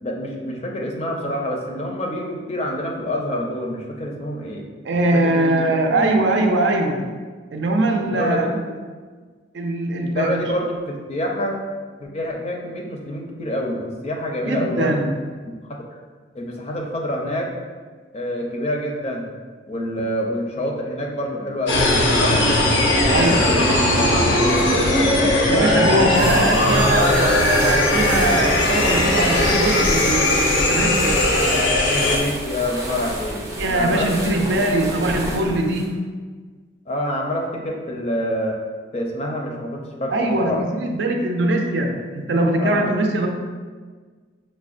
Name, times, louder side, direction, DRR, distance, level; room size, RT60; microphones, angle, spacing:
voice 1, 0.0-4.7 5.1-6.0 8.0-8.5 10.0-11.6 12.0-15.1 15.6-15.8 16.3-17.5 18.1-19.3 19.7-25.5 26.0-26.5 31.4-34.7 36.9-38.6 38.9-40.6 42.6-42.9, left 1 dB, 35° left, 0 dB, 0.4 m, -27 dB
voice 2, 4.8-7.1 7.5-8.6 9.5-10.4 14.5-15.2 23.1-23.5 25.5-31.2 33.6-36.0 40.1-43.3, right 2 dB, 75° right, 3 dB, 0.4 m, -21 dB
sound 1, 21.7-32.2, left 1 dB, 85° left, 0.6 m, -18 dB
sound 2, 26.1-35.9, right 1 dB, 15° right, 0.5 m, -30 dB
5.7 x 2.1 x 2.5 m, 1.5 s
head